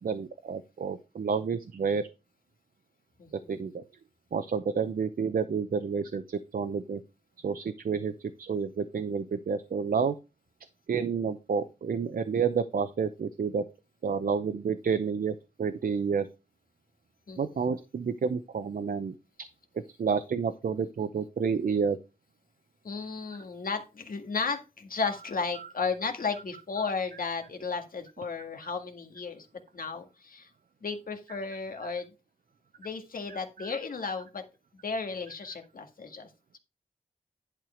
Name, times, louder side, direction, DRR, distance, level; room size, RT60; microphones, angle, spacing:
voice 1, 0.0-2.0 3.3-3.8 4.3-7.0 7.4-10.2 10.9-13.6 14.0-16.3 17.4-19.1 20.0-22.0 25.6-25.7 26.8-26.9 28.6-28.7 31.8-31.9 33.3-33.7 34.0-34.1, right 6 dB, 85° right, 10 dB, 0.7 m, -30 dB
voice 2, 3.2-3.6 17.3-17.7 22.8-29.5 29.7-30.5 30.8-32.1 32.8-34.4 34.8-36.3, left 4 dB, 85° left, 6 dB, 1.8 m, -34 dB
11.0 x 4.7 x 5.0 m, 0.29 s
wide cardioid pair, 75°, 14 cm